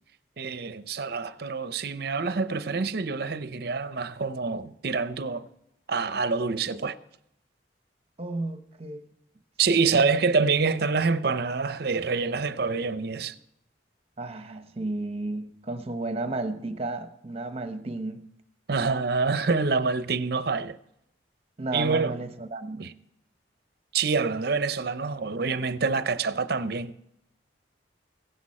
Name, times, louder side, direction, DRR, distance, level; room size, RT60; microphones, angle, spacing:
voice 1, 0.4-5.5 5.9-7.0 9.6-13.3 18.7-20.8 21.7-22.2 22.8-22.9 23.9-26.9, right 4 dB, 55° right, 0.6 m, -26 dB
voice 2, 8.2-9.0 14.2-18.2 21.6-22.9, right 2 dB, 30° right, 0.9 m, -33 dB
16.0 x 11.0 x 4.2 m
head